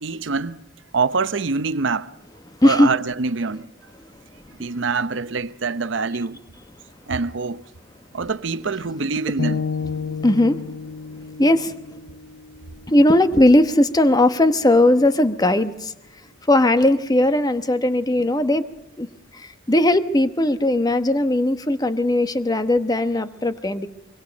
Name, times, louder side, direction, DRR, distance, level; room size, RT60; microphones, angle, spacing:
voice 1, 0.0-0.6 0.9-2.1 2.6-3.7 4.6-6.4 7.1-7.6 8.1-9.7, right 4 dB, 65° right, 0.8 m, -25 dB
sound 1, 9.4-13.5, left 5 dB, 60° left, 2.7 m, -31 dB
voice 2, 10.2-10.6 11.4-11.7 12.9-15.9 16.5-18.6 19.0-19.1 19.7-23.9, left 1 dB, 20° left, 1.0 m, -18 dB
24.5 x 24.0 x 5.3 m
head